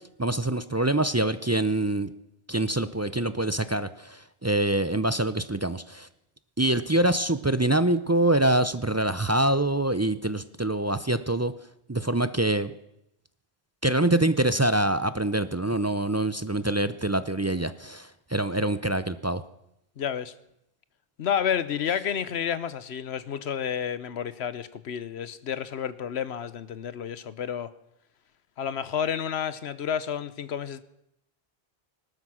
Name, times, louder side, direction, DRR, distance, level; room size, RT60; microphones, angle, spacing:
voice 1, 0.2-2.1 2.5-6.1 6.6-11.5 11.9-12.7 13.8-19.4, right 1 dB, 25° right, 13 dB, 0.4 m, -25 dB
voice 2, 20.0-20.3 21.2-27.7 28.6-30.8, left 8 dB, 80° left, 15 dB, 1.1 m, -30 dB
19.0 x 12.0 x 6.2 m, 0.82 s
omnidirectional pair, 1.1 m